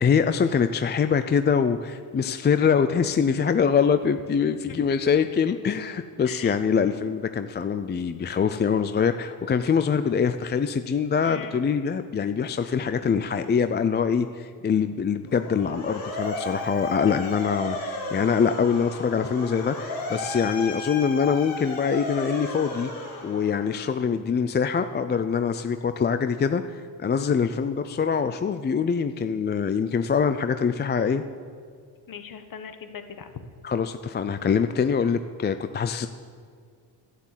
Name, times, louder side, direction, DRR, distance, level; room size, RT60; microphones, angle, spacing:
voice 1, 0.0-22.9 23.2-31.2 33.6-36.1, left 6 dB, 25° left, 10 dB, 0.5 m, -24 dB
voice 2, 6.2-6.6 11.2-11.6 17.0-17.3 32.1-33.4, left 7 dB, 45° left, 9 dB, 1.3 m, -39 dB
Motor vehicle (road) / Siren, 15.3-23.9, left 2 dB, 85° left, 4.0 m, -34 dB
11.5 x 9.8 x 7.5 m, 2.1 s
cardioid pair, 90°, 46 cm